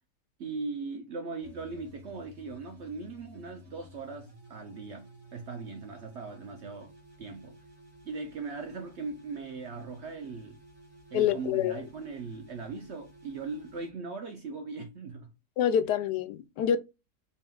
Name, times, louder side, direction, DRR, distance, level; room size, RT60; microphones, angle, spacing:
voice 1, 0.4-7.6 8.0-10.6 11.1-15.3, right 4 dB, 65° right, 0.7 m, -39 dB
sound 1, 1.4-13.9, right 1 dB, 35° right, 2.6 m, -54 dB
voice 2, 11.1-11.8 15.6-16.8, left 9 dB, 85° left, 1.2 m, -26 dB
4.2 x 3.5 x 2.3 m
omnidirectional pair, 1.7 m